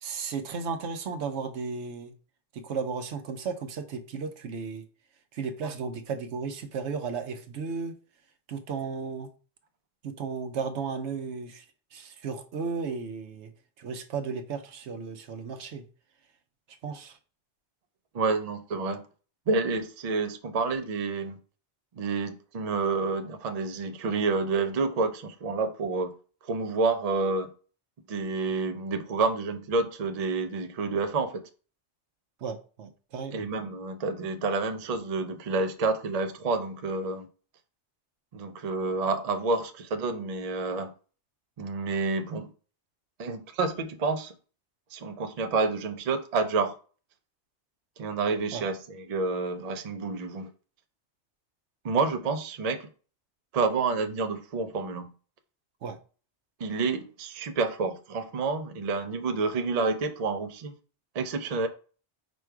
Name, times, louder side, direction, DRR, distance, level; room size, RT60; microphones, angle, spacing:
voice 1, 0.0-2.1 2.5-4.8 5.3-7.9 8.5-9.3 10.0-11.6 11.9-13.5 13.8-15.8 16.8-17.2 32.4-33.5 48.5-48.6 55.8-56.0, right 5 dB, 75° right, 0.9 m, -34 dB
voice 2, 18.1-19.1 19.5-21.4 22.0-26.1 26.5-27.5 28.1-31.5 33.3-37.3 38.3-40.9 41.6-42.5 43.2-44.3 44.9-46.7 48.0-50.5 51.8-52.9 53.5-55.1 56.6-60.7 61.1-61.7, right 4 dB, 50° right, 0.5 m, -29 dB
5.1 x 2.3 x 4.6 m
omnidirectional pair, 1.2 m